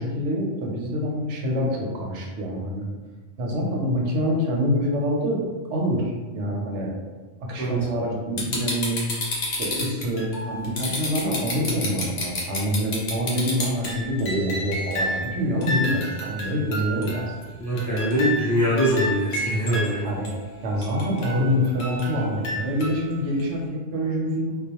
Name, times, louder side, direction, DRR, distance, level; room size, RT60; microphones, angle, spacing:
voice 1, 0.0-2.9 3.4-5.4 5.7-6.9 7.4-9.0 9.5-17.5 20.0-20.3 20.6-24.5, equal, 85° right, -1 dB, 0.9 m, -26 dB
sound 1, 8.4-15.3 15.6-17.4 17.8-19.9 20.3-20.4 20.8-23.0 23.4-23.5, left 1 dB, 70° left, 0.9 m, -30 dB
voice 2, 17.6-20.0, equal, 25° left, -9 dB, 0.4 m, -23 dB
2.3 x 2.1 x 2.8 m, 1.3 s
omnidirectional pair, 1.2 m